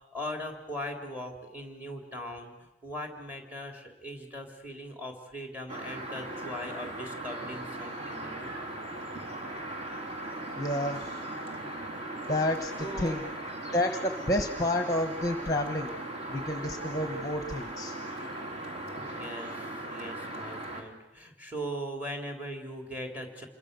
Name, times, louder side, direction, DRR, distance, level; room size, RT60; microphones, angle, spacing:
voice 1, 0.1-2.5 2.8-8.5 12.8-13.2 19.0-23.5, equal, 10° right, 4 dB, 3.5 m, -40 dB
sound 1, 5.7-20.8, right 1 dB, 35° right, 3.4 m, -38 dB
voice 2, 10.6-11.0 12.2-12.7 13.0-13.2 13.7-15.9 16.3-18.0, left 1 dB, 20° left, 7 dB, 1.2 m, -29 dB
27.5 x 22.0 x 6.8 m, 1.0 s
head